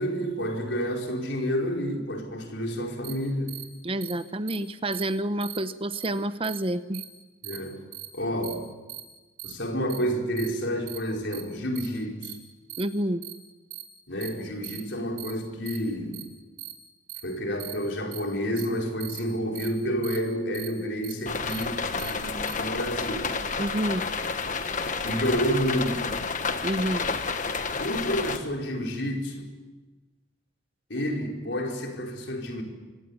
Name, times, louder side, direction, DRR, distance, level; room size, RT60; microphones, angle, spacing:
voice 1, 0.0-3.6 7.4-7.8 8.1-8.6 9.4-12.4 14.1-16.3 17.2-23.4 25.0-26.1 27.8-29.5 30.9-32.6, equal, 75° left, 4.9 m, -29 dB
sound 1, 3.0-3.1 3.5-3.6 4.0-4.1 4.5-4.6 4.9-5.0 5.4-5.6 5.9-6.1 6.4-6.6 6.9-7.0 7.4-7.6 7.9-8.1 8.4-8.5 8.9-9.0 9.4-9.5 9.9-10.0 10.4-10.5 10.9-11.0 11.3-11.4 11.8-11.9 12.2-12.3 12.7-12.8 13.2-13.3 13.7-13.8 14.2-14.3 14.6-14.8 15.2-15.3 15.7-15.8 16.1-16.2 16.6-16.7 17.1-17.2 17.6-17.7 18.1-18.2 18.6-18.7 19.0-19.2 19.6-19.7 20.0-20.2 20.5-20.7 21.0-21.1 21.5-21.6 22.0-22.1 22.5-22.6, right 15 dB, 80° right, 4.4 m, -39 dB
voice 2, 3.8-7.0 12.8-13.2 23.6-24.0 26.6-27.0, right 1 dB, 30° right, 0.9 m, -28 dB
sound 2, 21.3-28.4, left 4 dB, 45° left, 1.5 m, -30 dB
24.5 x 17.5 x 9.8 m
head